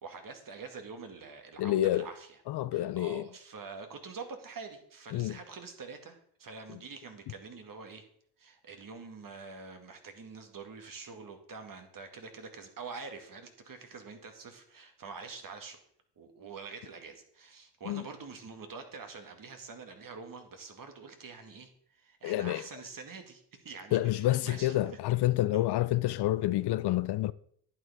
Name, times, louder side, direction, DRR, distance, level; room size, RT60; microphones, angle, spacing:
voice 1, 0.0-2.4 2.7-8.0 8.4-15.8 16.2-25.0 25.5-25.6, right 4 dB, 45° right, 2.2 m, -46 dB
voice 2, 1.6-2.1 2.5-3.3 5.1-5.4 17.9-18.0 22.2-22.6 23.9-27.3, left 15 dB, 55° left, 0.5 m, -28 dB
11.0 x 9.0 x 3.6 m
supercardioid pair, 65°, 48 cm